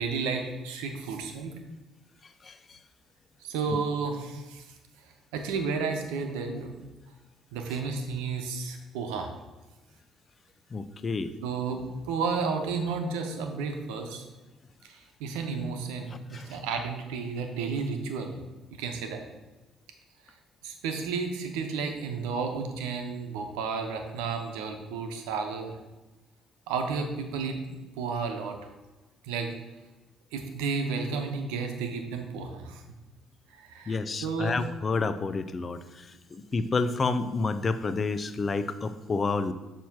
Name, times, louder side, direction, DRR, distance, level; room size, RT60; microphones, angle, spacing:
voice 1, 0.0-1.5 3.4-4.7 5.0-6.8 7.5-9.3 11.4-14.2 14.8-18.4 18.8-19.2 20.3-20.4 20.6-25.7 26.7-28.6 29.2-29.5 30.3-32.8 33.5-34.6 36.5-36.7, right 5 dB, 90° right, 5 dB, 0.8 m, -32 dB
voice 2, 2.4-2.8 3.7-3.8 10.7-11.3 16.3-16.6 33.9-39.5, left 4 dB, 35° left, 12 dB, 0.5 m, -30 dB
7.1 x 3.0 x 6.0 m, 1.1 s
supercardioid pair, 70°, 0 cm